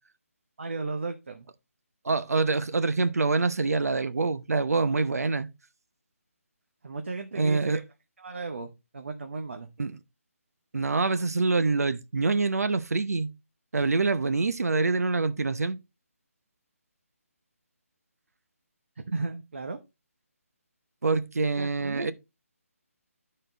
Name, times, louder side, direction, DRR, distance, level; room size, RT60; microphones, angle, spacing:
voice 1, 0.6-1.5 6.8-7.8 8.2-9.7 19.0-19.8 21.5-22.1, right 3 dB, 50° right, 1.0 m, -35 dB
voice 2, 2.0-5.5 7.3-7.8 9.8-10.0 10.7-13.3 13.7-15.8 21.0-22.1, right 3 dB, 85° right, 0.9 m, -25 dB
12.0 x 4.4 x 3.9 m
hypercardioid pair, 175°, 8 cm